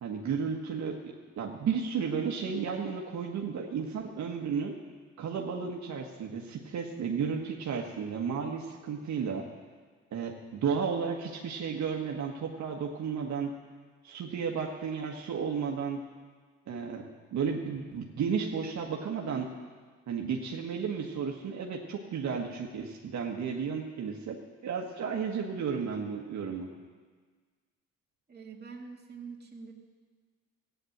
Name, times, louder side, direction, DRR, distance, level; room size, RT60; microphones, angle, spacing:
voice 1, 0.0-4.7 5.2-9.4 10.1-13.5 14.0-16.0 16.7-19.5 20.1-26.7, right 6 dB, 65° right, 1 dB, 1.6 m, -33 dB
voice 2, 28.3-29.7, right 5 dB, 35° right, 0 dB, 2.4 m, -45 dB
15.0 x 9.4 x 8.0 m, 1.5 s
cardioid pair, 90°, 30 cm